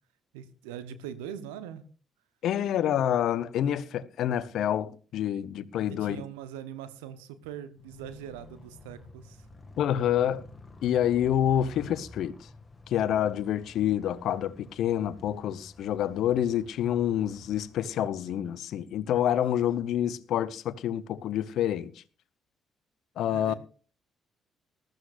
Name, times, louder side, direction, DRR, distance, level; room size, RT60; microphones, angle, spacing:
voice 1, 0.3-1.8 5.9-9.5 23.3-23.5, right 9 dB, 80° right, 1.0 m, -41 dB
voice 2, 2.4-6.2 9.8-10.4 10.8-12.4 12.9-21.9 23.2-23.5, left 10 dB, 65° left, 0.7 m, -27 dB
Motorcycle, 7.7-18.4, left 2 dB, 25° left, 1.9 m, -51 dB
20.0 x 13.5 x 2.5 m
hypercardioid pair, 45°, 0 cm